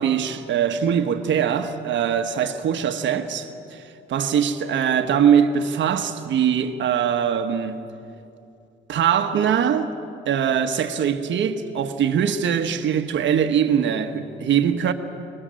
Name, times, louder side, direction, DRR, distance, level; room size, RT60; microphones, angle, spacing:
voice 1, 0.0-7.8 8.9-9.9 10.2-14.9, right 8 dB, 70° right, 1.3 m, -22 dB
27.5 x 20.0 x 7.6 m
cardioid pair, 90°, 20 cm